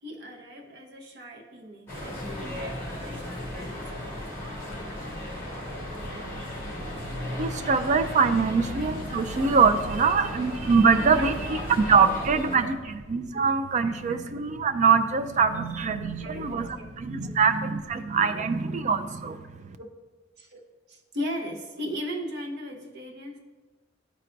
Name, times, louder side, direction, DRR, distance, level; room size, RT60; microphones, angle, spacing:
voice 1, 0.0-4.3 9.9-10.0 11.2-11.3 12.5-12.7 13.8-14.2 16.2-16.9 17.2-17.4 18.3-18.4 18.9-19.0 19.8-19.9 20.4-23.4, equal, 60° right, 1 dB, 0.9 m, -38 dB
sound 1, 1.9-12.6, left 1 dB, 15° left, 2.1 m, -35 dB
voice 2, 6.9-19.8, right 5 dB, 40° right, 8 dB, 0.4 m, -24 dB
11.5 x 4.4 x 2.6 m, 1.3 s
head